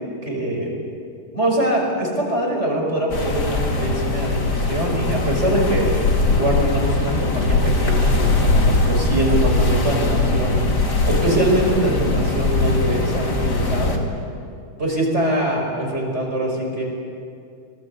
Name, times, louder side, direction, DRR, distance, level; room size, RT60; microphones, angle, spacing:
voice 1, 0.2-0.7 1.3-5.9 6.4-10.6 11.0-14.0 14.8-16.8, right 1 dB, 15° right, -1 dB, 5.4 m, -23 dB
sound 1, 3.1-14.0, left 2 dB, 35° left, 2.1 m, -20 dB
25.5 x 20.0 x 8.4 m, 2.3 s
omnidirectional pair, 4.4 m